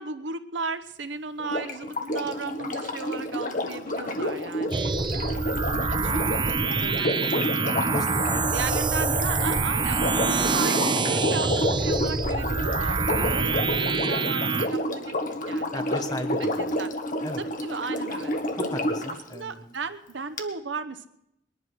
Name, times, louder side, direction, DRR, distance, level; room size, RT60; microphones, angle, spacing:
voice 1, 0.0-7.8 8.5-15.2 15.5-15.9 16.4-16.5 16.8-16.9 17.6-18.4 19.3-21.1, right 4 dB, 75° right, 11 dB, 0.9 m, -35 dB
Sink (filling or washing), 1.4-19.2 20.4-20.5, left 1 dB, 45° left, 1.4 m, -30 dB
sound 1, 4.7-14.7, right 4 dB, 25° right, 0.5 m, -26 dB
voice 2, 7.9-8.5 8.8-9.6 10.3-10.5 13.3-13.4 15.7-16.8 17.2-17.4 18.5-19.7, left 1 dB, 20° left, 7 dB, 1.1 m, -36 dB
20.5 x 11.0 x 6.2 m, 0.80 s
head